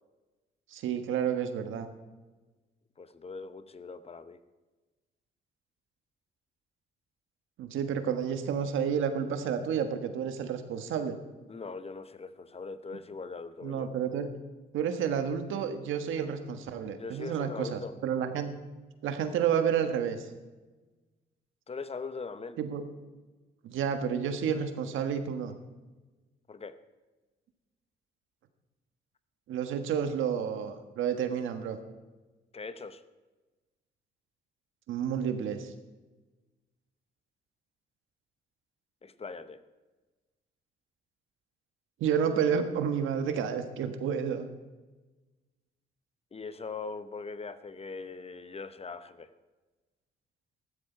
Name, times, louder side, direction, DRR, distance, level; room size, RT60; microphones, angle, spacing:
voice 1, 0.7-1.9 7.6-11.2 13.6-14.3 14.7-18.6 19.0-20.3 22.6-22.9 23.6-25.5 29.5-31.8 34.9-35.7 42.0-44.5, right 7 dB, 85° right, 8 dB, 1.5 m, -30 dB
voice 2, 3.0-4.4 11.5-13.9 16.8-17.9 21.7-22.6 26.5-26.8 32.5-33.0 39.0-39.6 46.3-49.3, left 4 dB, 30° left, 12 dB, 0.8 m, -41 dB
14.5 x 12.5 x 4.5 m, 1.2 s
cardioid pair, 90°, 20 cm